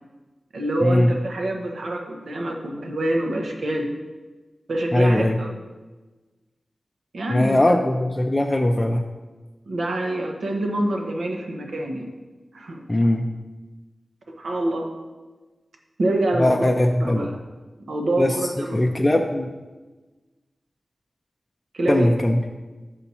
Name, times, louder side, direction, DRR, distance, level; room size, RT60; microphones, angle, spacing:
voice 1, 0.5-3.9 4.7-5.5 7.1-7.7 9.7-12.1 12.5-12.8 14.4-15.0 16.0-16.7 17.0-17.4 17.9-18.8 21.7-22.1, right 1 dB, 85° right, 2 dB, 1.0 m, -26 dB
voice 2, 4.9-5.4 7.3-9.0 12.9-13.3 16.4-17.3 18.2-19.5 21.9-22.4, left 1 dB, 20° left, 2 dB, 0.4 m, -20 dB
7.0 x 5.8 x 4.2 m, 1.2 s
wide cardioid pair, 100°, 0 cm